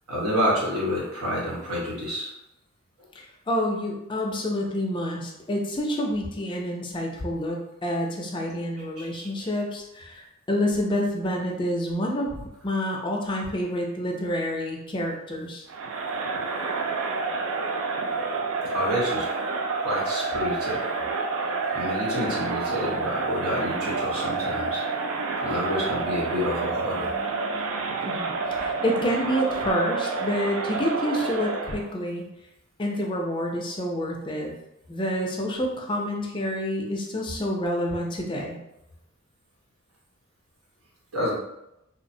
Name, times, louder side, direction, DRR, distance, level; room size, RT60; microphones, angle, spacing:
voice 1, 0.1-2.3 9.0-9.3 18.7-19.3 19.7-20.8 21.7-24.8 25.4-27.1 41.1-41.4, equal, 85° right, -5 dB, 1.0 m, -28 dB
voice 2, 3.2-15.7 28.0-32.3 32.8-34.5 34.9-38.6, equal, 20° left, 0 dB, 0.3 m, -28 dB
Crowd, 15.7-31.9, right 4 dB, 60° right, 0.3 m, -29 dB
3.1 x 2.0 x 2.6 m, 0.86 s
head